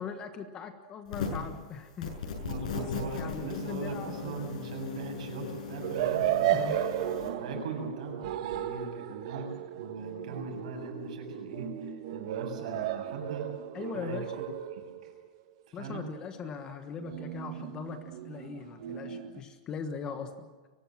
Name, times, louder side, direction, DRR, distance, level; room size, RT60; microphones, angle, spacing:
voice 1, 0.0-2.1 2.7-2.9 3.1-4.5 6.5-6.8 13.7-14.3 15.7-20.5, left 6 dB, 20° left, 8 dB, 1.3 m, -40 dB
sound 1, 1.1-1.5 2.0-7.3, left 5 dB, 90° left, 7.6 m, -38 dB
voice 2, 2.4-6.7 7.4-9.5 9.8-13.5 13.9-14.3 14.7-15.1 15.7-16.0, right 3 dB, 70° right, 3 dB, 7.5 m, -40 dB
sound 2, 5.8-15.3 17.0-19.4, right 12 dB, 50° right, 1.4 m, -34 dB
24.0 x 19.0 x 7.5 m, 1.4 s
supercardioid pair, 175°, 4 cm